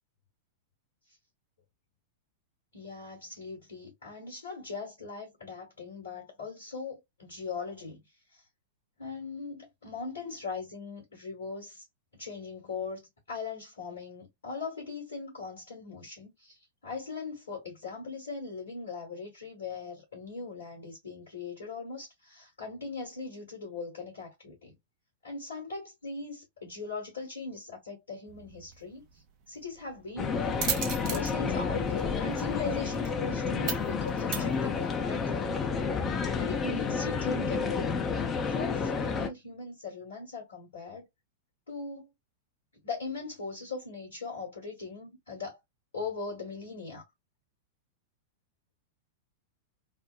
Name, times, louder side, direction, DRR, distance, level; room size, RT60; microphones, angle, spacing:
voice 1, 2.7-8.0 8.3-8.4 9.0-11.8 12.1-24.7 25.2-35.6 36.4-37.9 38.4-41.1 41.7-42.1 42.8-45.6 45.9-47.0, left 4 dB, 70° left, 1.5 m, -40 dB
sound 1, 28.3-35.2, right 7 dB, 40° right, 0.7 m, -39 dB
sound 2, 30.2-39.3, left 5 dB, 25° left, 0.6 m, -30 dB
3.2 x 2.0 x 2.3 m
figure-of-eight pair, 95°, 0 cm